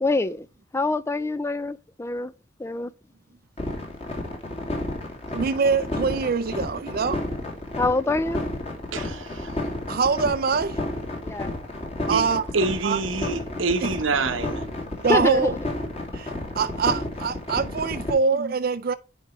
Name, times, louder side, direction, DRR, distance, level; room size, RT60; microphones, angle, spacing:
voice 1, 0.0-0.5 0.7-2.3 2.6-2.9 7.8-8.4 11.2-11.5 15.1-15.5, left 2 dB, 15° left, 0.3 m, -25 dB
sound 1, 3.6-18.1, left 1 dB, 35° left, 2.2 m, -31 dB
voice 2, 5.3-7.2 9.9-10.8 12.1-12.4 12.8-13.0 13.8-13.9 15.0-15.5 16.1-18.9, right 5 dB, 50° right, 0.5 m, -24 dB
voice 3, 8.9-9.5 12.1-12.3 12.5-14.6, right 3 dB, 85° right, 1.0 m, -26 dB
9.9 x 4.8 x 3.1 m
head